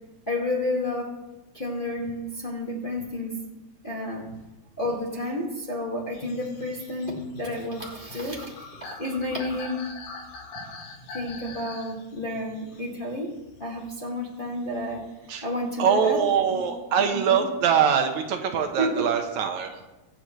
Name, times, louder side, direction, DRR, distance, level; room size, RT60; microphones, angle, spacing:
voice 1, 0.3-1.1 1.5-3.4 3.8-4.2 4.8-9.8 11.1-13.3 13.6-15.0 15.4-16.2 16.5-16.6 17.0-17.4 18.8-19.0, left 1 dB, 20° left, -4 dB, 1.6 m, -30 dB
sound 1, 6.1-14.1 14.6-16.8, left 3 dB, 75° left, 2.8 m, -44 dB
voice 2, 15.8-19.8, right 7 dB, 75° right, 4 dB, 2.3 m, -23 dB
23.0 x 8.2 x 3.1 m, 1.0 s
omnidirectional pair, 3.5 m